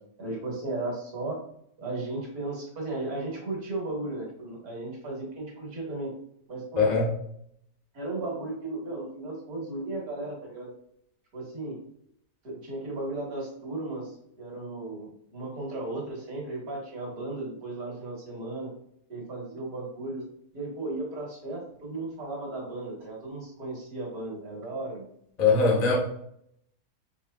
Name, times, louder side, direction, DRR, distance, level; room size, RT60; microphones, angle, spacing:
voice 1, 0.2-1.4 1.8-6.1 6.5-7.0 7.9-10.7 11.3-11.8 12.4-18.7 19.1-20.2 20.5-25.1, right 2 dB, 60° right, -2 dB, 1.9 m, -35 dB
voice 2, 6.8-7.1 25.4-26.0, left 4 dB, 35° left, 0 dB, 0.6 m, -21 dB
5.4 x 3.0 x 2.3 m, 0.70 s
omnidirectional pair, 1.9 m